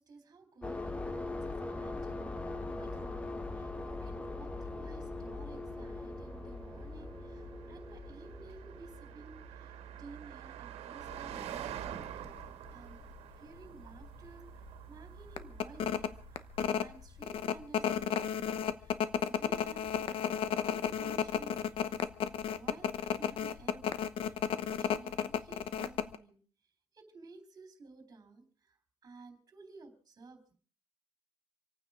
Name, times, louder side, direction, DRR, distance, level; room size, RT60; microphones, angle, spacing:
voice 1, 0.0-11.9 12.7-13.1 13.4-22.0 22.5-26.4 26.9-28.8 29.0-30.5, right 3 dB, 35° right, 6 dB, 3.7 m, -55 dB
sound 1, 0.6-10.1, left 3 dB, 10° left, 1.1 m, -41 dB
Car passing by, 1.5-17.1, right 10 dB, 75° right, 1.9 m, -48 dB
sound 2, 11.1-11.3 11.9-12.0 12.3-13.2 13.6-13.7 14.0-14.3 14.7-14.8 15.4-26.2, left 8 dB, 60° left, 1.0 m, -33 dB
27.0 x 9.1 x 5.0 m, 0.43 s
cardioid pair, 120°, 11 cm